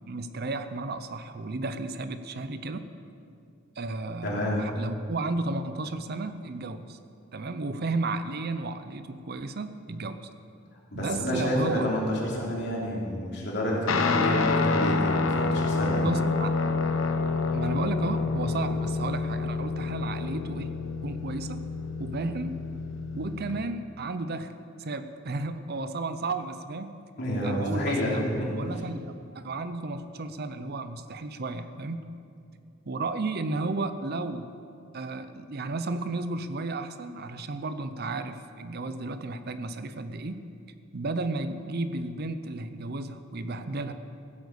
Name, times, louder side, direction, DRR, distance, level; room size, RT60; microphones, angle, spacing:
voice 1, 0.1-2.9 3.8-7.0 7.3-10.2 10.9-11.9 16.0-16.5 17.5-20.7 21.0-21.6 22.0-22.7 23.1-24.5 24.8-27.0 27.4-28.2 28.6-32.1 32.9-34.5 34.9-40.5 40.9-43.9, right 3 dB, 50° right, 10 dB, 0.6 m, -33 dB
voice 2, 4.2-4.6 10.9-16.0 27.2-28.7, equal, 55° left, -4 dB, 3.3 m, -29 dB
Guitar, 13.9-23.6, left 3 dB, 85° left, 0.9 m, -28 dB
15.5 x 8.0 x 6.9 m, 2.5 s
head